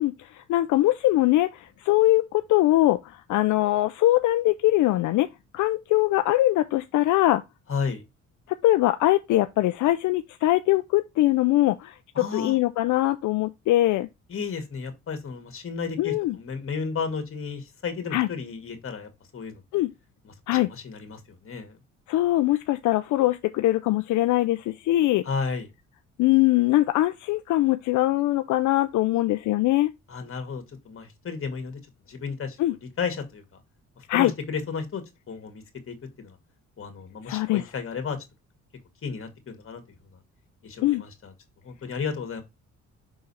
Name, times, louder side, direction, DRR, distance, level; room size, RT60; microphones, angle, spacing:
voice 1, 0.0-5.3 5.5-7.4 8.5-14.1 16.0-16.3 18.1-18.3 19.7-19.9 20.5-20.7 22.1-25.2 26.2-29.9 32.6-32.7 34.1-34.3 37.2-37.6 40.8-41.0, left 16 dB, 80° left, 0.5 m, -22 dB
voice 2, 7.7-8.0 12.2-12.6 14.3-19.6 20.2-21.8 25.2-25.7 30.1-31.8 32.1-32.6 33.0-33.6 34.1-36.4 36.8-38.2 39.0-39.8 40.6-41.3 41.6-42.4, left 5 dB, 45° left, 2.0 m, -33 dB
5.9 x 3.9 x 4.2 m
cardioid pair, 90°, 30 cm